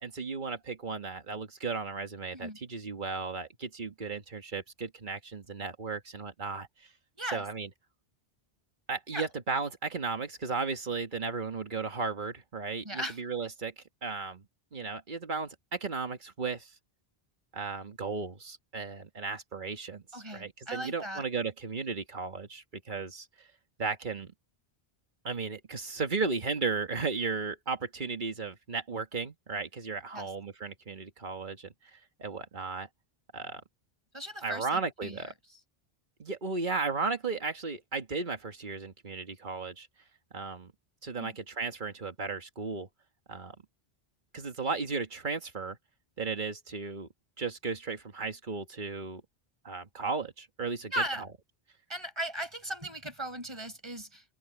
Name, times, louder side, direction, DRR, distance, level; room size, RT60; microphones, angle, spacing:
voice 1, 0.0-6.9 7.3-7.7 8.9-14.4 14.7-16.7 17.5-23.5 23.8-24.3 25.2-32.9 33.3-33.6 34.4-35.3 36.2-39.9 40.3-40.7 41.0-42.9 43.3-43.5 44.3-45.8 46.2-47.1 47.4-49.2 49.6-51.3, right 4 dB, 50° right, 1.8 m, -35 dB
voice 2, 12.8-13.2 20.1-21.2 30.1-30.3 34.1-35.2 41.2-41.3 50.9-51.2 51.9-54.2, right 1 dB, 25° right, 5.0 m, -37 dB
omnidirectional pair, 1.1 m